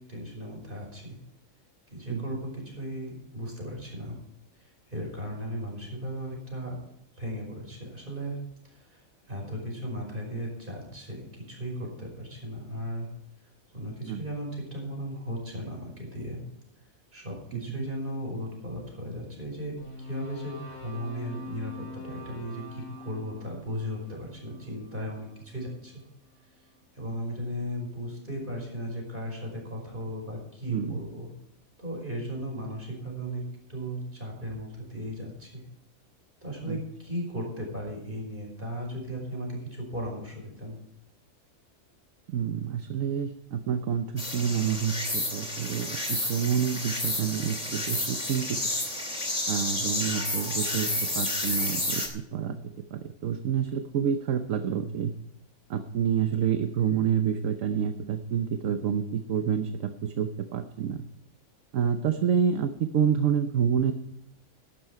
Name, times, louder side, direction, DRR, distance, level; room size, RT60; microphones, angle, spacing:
voice 1, 0.1-1.2 1.9-4.2 4.9-6.8 7.2-8.4 8.7-9.0 9.3-13.1 13.7-16.4 17.1-26.0 26.9-31.3 31.8-33.4 33.7-35.6 36.4-40.8, equal, 35° right, 0 dB, 5.6 m, -36 dB
voice 2, 17.5-17.9 30.7-31.0 36.7-36.8 42.3-48.6 49.5-52.6 52.9-55.1 55.7-61.0 61.7-63.9, right 8 dB, 70° right, 8 dB, 1.2 m, -28 dB
sound 1, 19.8-26.0, left 1 dB, 75° left, 4.4 m, -45 dB
sound 2, 44.2-52.1, left 1 dB, 25° left, 2.6 m, -30 dB
13.5 x 12.0 x 4.7 m, 0.79 s
omnidirectional pair, 1.5 m